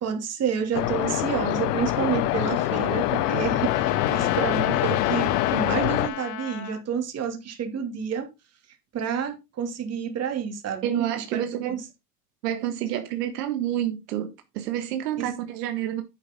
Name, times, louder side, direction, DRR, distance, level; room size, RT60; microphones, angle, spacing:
voice 1, 0.0-8.3 8.9-11.8 15.2-15.3, right 7 dB, 30° right, 2.8 m, -29 dB
sound 1, 0.7-6.1, left 14 dB, 70° left, 1.1 m, -25 dB
Trumpet, 2.1-6.8, left 14 dB, 50° left, 1.4 m, -34 dB
voice 2, 10.8-11.8 12.4-16.0, right 11 dB, 70° right, 1.7 m, -29 dB
9.9 x 7.3 x 3.8 m
supercardioid pair, 125°, 49 cm